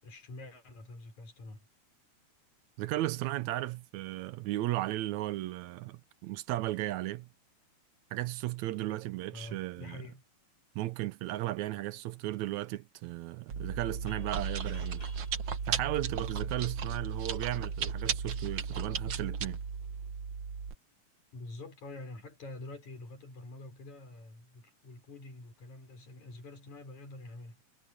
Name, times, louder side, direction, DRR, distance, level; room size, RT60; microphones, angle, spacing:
voice 1, 0.0-1.7 9.3-10.2 21.3-27.6, left 2 dB, 75° left, 6.5 m, -47 dB
voice 2, 2.8-7.3 8.1-10.0 10.8-15.1 15.7-19.6, right 16 dB, 80° right, 1.9 m, -35 dB
Chewing mastication, 13.5-20.7, right 6 dB, 50° right, 1.9 m, -35 dB
sound 1, 14.1-16.8, equal, 15° left, 6.7 m, -57 dB
omnidirectional pair, 3.4 m